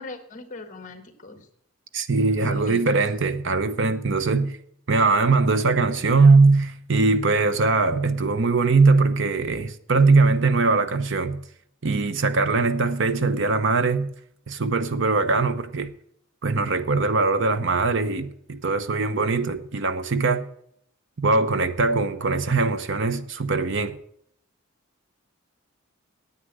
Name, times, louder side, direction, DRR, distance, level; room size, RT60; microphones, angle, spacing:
voice 1, 0.0-1.5 2.3-3.0, left 3 dB, 40° left, 1.5 m, -40 dB
voice 2, 1.9-4.6 4.9-11.4 11.8-14.1 14.5-15.9 16.4-20.5 21.2-24.0, right 3 dB, 60° right, 0.8 m, -21 dB
9.7 x 8.9 x 7.9 m
head